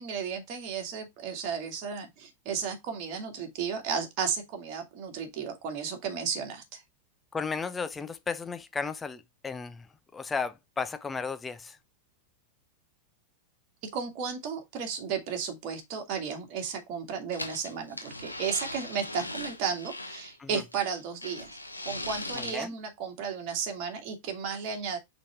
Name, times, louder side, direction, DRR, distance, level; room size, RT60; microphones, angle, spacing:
voice 1, 0.0-6.8 13.9-21.5 21.8-25.0, right 6 dB, 40° right, 2.1 m, -34 dB
voice 2, 7.3-9.9 10.1-11.8 20.4-20.6 22.3-22.7, left 5 dB, 15° left, 0.5 m, -34 dB
sound 1, 17.3-20.3 20.7-22.5, left 2 dB, 85° left, 1.0 m, -39 dB
5.2 x 4.1 x 4.4 m
figure-of-eight pair, 90°, 0 cm